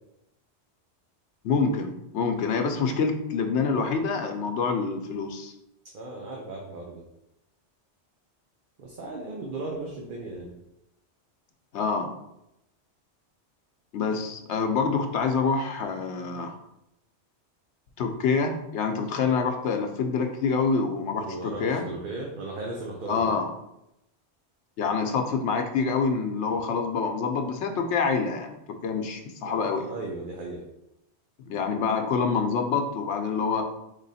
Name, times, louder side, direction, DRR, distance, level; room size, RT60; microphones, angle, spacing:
voice 1, 1.4-5.5 11.7-12.1 13.9-16.6 18.0-21.9 23.1-23.5 24.8-29.9 31.5-33.6, left 5 dB, 85° left, 5 dB, 1.0 m, -26 dB
voice 2, 5.9-7.0 8.8-10.5 21.2-23.3 29.4-30.6, right 2 dB, 55° right, -1 dB, 0.8 m, -36 dB
3.8 x 3.3 x 4.1 m, 0.85 s
omnidirectional pair, 1.1 m